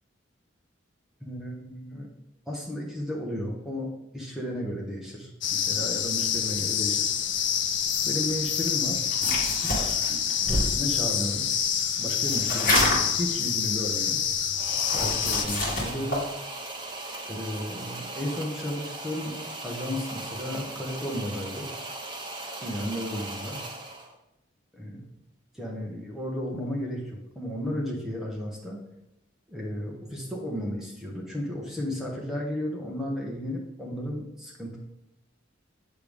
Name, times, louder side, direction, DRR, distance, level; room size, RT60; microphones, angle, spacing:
voice 1, 1.2-2.1 2.5-7.5 8.0-9.1 9.5-11.5 12.0-14.2 14.9-16.3 17.3-21.7 22.6-23.6 24.7-25.0 25.5-28.8 29.5-34.8, equal, ahead, -3 dB, 1.2 m, -34 dB
sound 1, 5.4-15.5, left 8 dB, 70° left, 0.5 m, -27 dB
sound 2, 9.1-10.8 12.3-13.2 14.8-16.2, left 1 dB, 45° left, 2.5 m, -27 dB
sound 3, 14.6-24.1, right 2 dB, 25° right, 0.9 m, -38 dB
8.3 x 6.8 x 3.6 m, 0.87 s
head